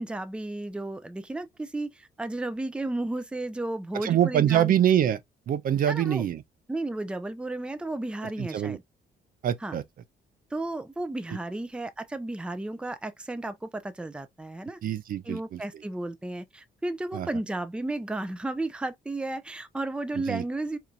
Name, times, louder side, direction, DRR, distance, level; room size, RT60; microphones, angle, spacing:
voice 1, 0.0-4.7 5.9-6.2 6.7-8.8 9.6-9.8 10.5-14.8 15.2-20.8, right 2 dB, 5° right, 0.5 m, -33 dB
voice 2, 4.0-5.2 5.5-6.4 8.4-8.8 9.4-9.8 14.8-15.6 17.1-17.3 20.3-20.4, right 10 dB, 60° right, 0.5 m, -24 dB
4.3 x 2.6 x 2.3 m
cardioid pair, 105°, 17 cm